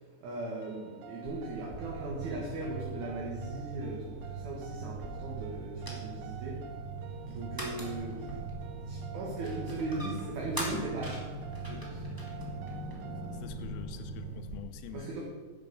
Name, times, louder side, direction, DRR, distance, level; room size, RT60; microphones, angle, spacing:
voice 1, 0.2-6.6 7.3-8.3 8.9-11.2 11.7-12.0 14.9-15.2, right 2 dB, 60° right, -3 dB, 2.8 m, -38 dB
sound 1, 0.6-13.4, right 11 dB, 80° right, 1.9 m, -49 dB
sound 2, 1.3-14.6, equal, 10° right, 1.6 m, -46 dB
sound 3, 1.7-14.4, right 3 dB, 40° right, 3.3 m, -41 dB
voice 2, 12.1-13.0 13.2-15.1, left 10 dB, 85° left, 8 dB, 2.5 m, -47 dB
10.5 x 7.9 x 6.8 m, 1.5 s
omnidirectional pair, 4.2 m